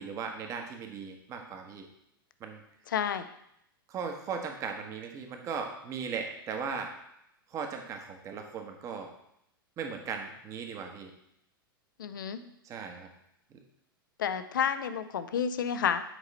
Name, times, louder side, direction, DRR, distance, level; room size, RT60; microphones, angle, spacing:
voice 1, 0.0-1.9 2.4-2.6 3.9-6.9 7.5-9.1 9.8-11.1 12.6-13.1 13.5-13.6, right 6 dB, 25° right, 4 dB, 1.1 m, -38 dB
voice 2, 2.9-3.3 12.0-12.4 14.2-16.0, left 8 dB, 60° left, 11 dB, 0.6 m, -30 dB
8.1 x 4.9 x 4.1 m, 0.78 s
figure-of-eight pair, 95°, 12 cm